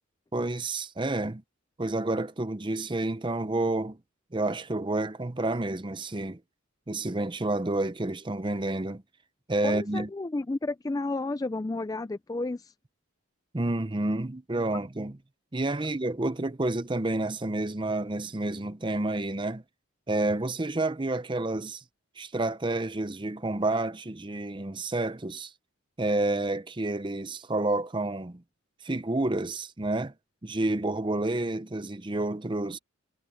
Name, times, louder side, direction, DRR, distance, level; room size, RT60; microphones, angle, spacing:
voice 1, 0.3-1.4 1.8-4.0 4.3-6.4 6.9-9.0 9.5-10.1 13.5-15.2 15.5-19.6 20.1-21.8 22.2-25.5 26.0-28.4 28.8-30.1 30.4-32.8, right 2 dB, 20° right, 0.6 m, -29 dB
voice 2, 9.6-12.7, left 2 dB, 15° left, 0.3 m, -32 dB
head